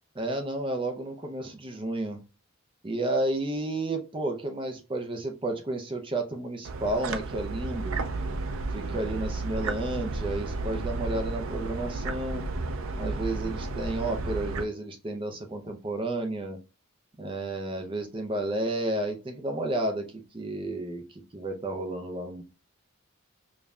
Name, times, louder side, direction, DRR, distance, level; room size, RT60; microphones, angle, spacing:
voice 1, 0.2-2.2 2.8-8.0 8.7-12.4 12.9-16.6 17.2-22.4, right 2 dB, 25° right, 5 dB, 0.5 m, -32 dB
sound 1, 6.6-14.6, right 3 dB, 70° right, 0.5 m, -32 dB
5.1 x 2.7 x 2.3 m, 0.30 s
head